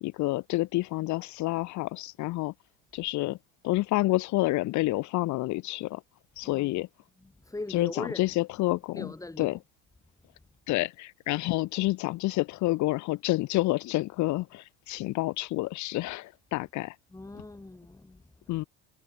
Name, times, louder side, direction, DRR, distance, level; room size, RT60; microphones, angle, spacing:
voice 1, 0.0-2.5 2.9-3.4 3.6-6.0 6.4-6.9 7.7-9.6 10.7-17.0 18.5-18.6, left 19 dB, 60° left, 2.3 m, -29 dB
voice 2, 7.2-8.4 8.9-9.6 17.1-18.7, left 2 dB, 10° left, 5.4 m, -41 dB
hypercardioid pair, 90°, 33 cm